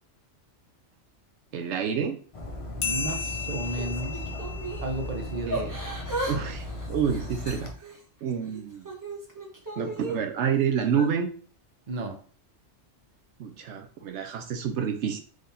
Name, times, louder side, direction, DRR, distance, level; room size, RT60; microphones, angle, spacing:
voice 1, 1.5-2.2 5.3-5.7 6.3-7.7 8.2-8.9 9.8-11.3 13.4-15.2, right 7 dB, 80° right, 5 dB, 0.9 m, -28 dB
Dog, 2.3-7.7, left 1 dB, 35° left, 0.7 m, -37 dB
sound 1, 2.8-5.9, left 6 dB, 60° left, 1.1 m, -35 dB
voice 2, 2.8-4.2 4.8-5.6 11.9-12.2, right 2 dB, 45° right, 5 dB, 0.8 m, -33 dB
Yell / Crying sobbing, 3.6-4.9 5.5-6.4 6.6-8.0 8.5-10.2 10.9-11.1, right 2 dB, 15° right, 1.0 m, -35 dB
3.8 x 3.4 x 4.0 m, 0.43 s
omnidirectional pair, 1.2 m